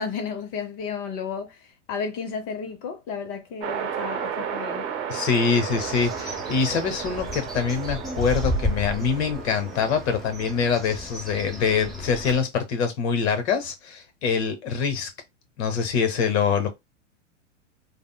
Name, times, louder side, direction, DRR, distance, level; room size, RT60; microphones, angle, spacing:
voice 1, 0.0-1.6 1.9-4.9, left 6 dB, 35° left, 0.6 m, -32 dB
sound 1, 3.6-11.0, right 8 dB, 30° right, 0.8 m, -34 dB
voice 2, 5.1-15.1 15.6-16.7, left 6 dB, 60° left, 1.0 m, -24 dB
Bird, 5.7-12.4, equal, ahead, 0.7 m, -33 dB
3.3 x 2.0 x 2.2 m
hypercardioid pair, 105°, 38 cm